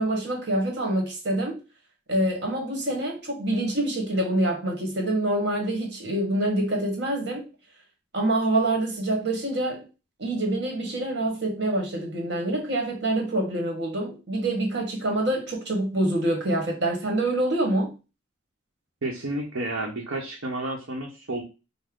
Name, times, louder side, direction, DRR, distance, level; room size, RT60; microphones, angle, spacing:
voice 1, 0.0-1.6 2.1-7.5 8.1-9.8 10.2-17.9, right 1 dB, 55° right, 1.4 m, -26 dB
voice 2, 19.0-21.4, right 2 dB, 85° right, 0.9 m, -31 dB
5.3 x 2.1 x 3.7 m
head